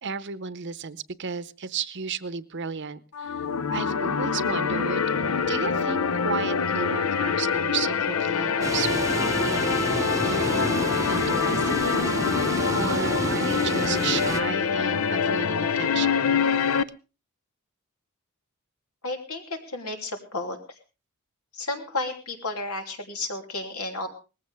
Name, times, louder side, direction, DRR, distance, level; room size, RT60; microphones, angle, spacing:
voice 1, 0.0-3.4 3.7-5.1 5.5-16.2, right 6 dB, 55° right, 15 dB, 0.8 m, -33 dB
sound 1, 3.1-16.8, left 6 dB, 75° left, 0.6 m, -25 dB
sound 2, 8.6-14.4, right 1 dB, 15° right, 0.9 m, -30 dB
voice 2, 19.0-20.6 21.5-24.1, left 2 dB, 90° left, 4 dB, 3.1 m, -32 dB
19.5 x 15.5 x 3.5 m, 0.32 s
head